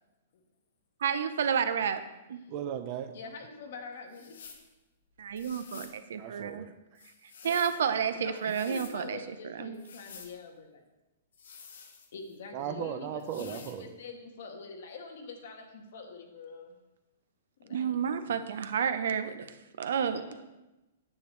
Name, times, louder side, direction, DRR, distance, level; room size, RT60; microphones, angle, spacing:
voice 1, 1.0-2.0 2.3-2.4 5.2-6.7 7.4-9.2 9.6-9.8 17.7-20.2, right 7 dB, 65° right, 11 dB, 0.6 m, -30 dB
voice 2, 2.5-3.1 6.2-6.7 12.5-13.9, right 9 dB, 25° right, 9 dB, 0.3 m, -36 dB
voice 3, 3.1-4.5 7.4-10.9 12.1-16.8 17.6-17.9 20.0-20.4, left 4 dB, 50° left, 3 dB, 1.3 m, -45 dB
sound 1, 4.1-4.7 5.4-6.0 7.0-7.8 8.4-9.0 9.7-10.3 11.3-12.4 13.2-13.8, left 6 dB, 75° left, 1.3 m, -50 dB
9.6 x 8.3 x 3.2 m, 1.0 s
hypercardioid pair, 180°, 0 cm